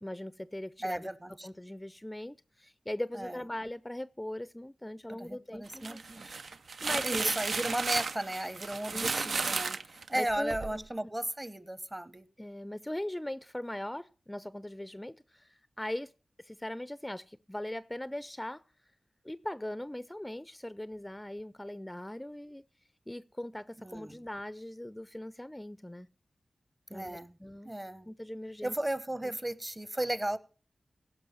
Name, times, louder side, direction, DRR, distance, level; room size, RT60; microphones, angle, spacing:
voice 1, 0.0-1.1 1.4-6.4 6.8-7.3 7.6-7.8 8.9-9.6 9.9-10.9 12.4-16.1 16.4-18.6 19.2-22.6 23.1-26.1 26.9-27.7 28.1-28.7 29.2-29.4, left 1 dB, 15° left, 0.4 m, -40 dB
voice 2, 0.8-1.5 3.1-3.4 5.1-6.4 7.0-9.8 10.1-12.3 23.8-24.2 26.9-27.4 27.6-28.1 28.6-30.4, right 1 dB, 25° right, 0.9 m, -35 dB
sound 1, 5.7-10.8, right 4 dB, 80° right, 0.5 m, -34 dB
16.5 x 5.7 x 5.5 m
cardioid pair, 45°, 0 cm